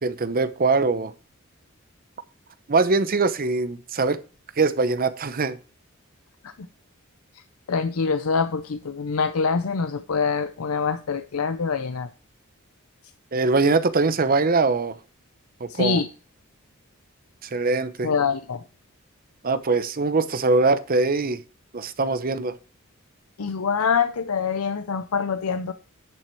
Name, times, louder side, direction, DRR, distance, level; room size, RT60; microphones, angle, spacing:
voice 1, 0.0-1.1 2.7-4.2 4.6-5.6 13.3-15.0 15.6-16.0 17.4-18.1 19.4-21.4 21.7-22.6, right 3 dB, 45° right, 0.8 m, -22 dB
voice 2, 7.7-12.1 15.7-16.1 18.0-18.6 23.4-25.7, left 5 dB, 85° left, 0.6 m, -25 dB
10.5 x 6.1 x 4.5 m
head